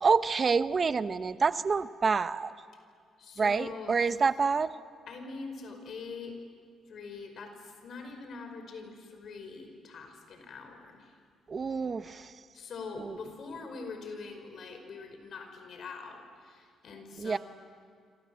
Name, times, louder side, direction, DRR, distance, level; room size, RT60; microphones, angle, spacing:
voice 1, 0.0-2.5 3.4-4.8 11.5-12.4 13.0-13.2 17.2-17.4, right 5 dB, 40° right, 13 dB, 0.8 m, -27 dB
voice 2, 3.2-3.9 5.1-6.4 6.9-11.2 12.5-17.4, left 4 dB, 60° left, 6 dB, 5.2 m, -43 dB
27.0 x 26.5 x 7.7 m, 2.1 s
cardioid pair, 90°, 0 cm